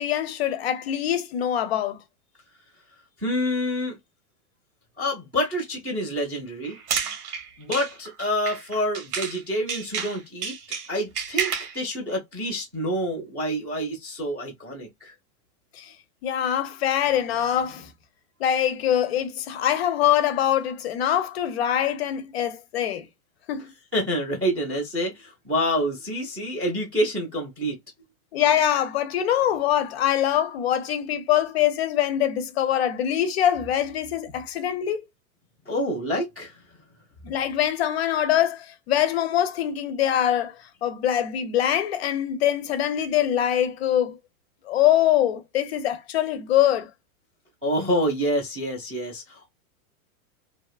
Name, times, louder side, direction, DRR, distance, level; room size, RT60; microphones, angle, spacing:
voice 1, 0.0-2.0 15.7-15.9 16.2-17.9 18.4-23.1 23.5-23.7 28.3-35.0 37.2-44.2 44.7-46.9, left 11 dB, 45° left, 0.5 m, -23 dB
voice 2, 3.2-4.0 5.0-6.8 7.6-10.6 10.9-15.1 23.9-27.8 35.7-36.6 47.6-49.5, equal, 10° right, 0.3 m, -27 dB
sound 1, 6.6-9.4 9.7-11.8, right 6 dB, 85° right, 1.1 m, -30 dB
2.7 x 2.3 x 2.3 m
supercardioid pair, 160°, 44 cm